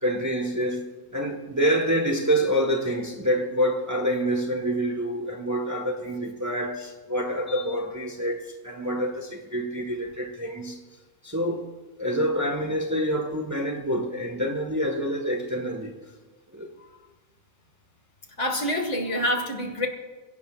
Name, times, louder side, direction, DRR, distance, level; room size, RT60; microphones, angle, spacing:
voice 1, 0.0-10.8 11.2-11.6 12.0-15.9 16.5-16.7, equal, 10° right, 1.4 m, -27 dB
voice 2, 18.4-19.9, left 1 dB, 55° left, 2.4 m, -26 dB
28.0 x 17.0 x 2.5 m
omnidirectional pair, 1.5 m